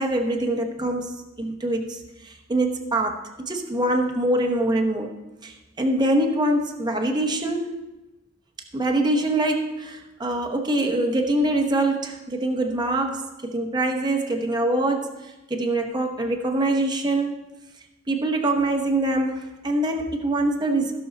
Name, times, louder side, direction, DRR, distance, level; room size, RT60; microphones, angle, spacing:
voice 1, 0.0-7.8 8.7-17.4 18.1-20.9, right 1 dB, 20° right, 2 dB, 0.9 m, -24 dB
15.5 x 6.3 x 4.0 m, 1.0 s
head